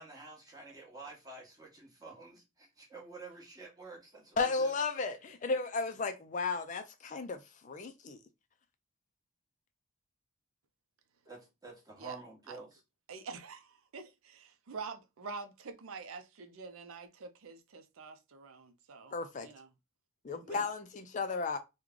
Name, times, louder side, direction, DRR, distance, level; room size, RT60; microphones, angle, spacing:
voice 1, 0.0-4.7 11.2-12.8, right 3 dB, 15° right, 1.2 m, -50 dB
voice 2, 4.4-8.2 19.1-19.5 20.2-21.6, left 4 dB, 35° left, 0.3 m, -34 dB
voice 3, 13.1-19.1 19.4-19.7 20.4-20.6, right 4 dB, 75° right, 0.5 m, -46 dB
3.1 x 2.2 x 3.6 m
head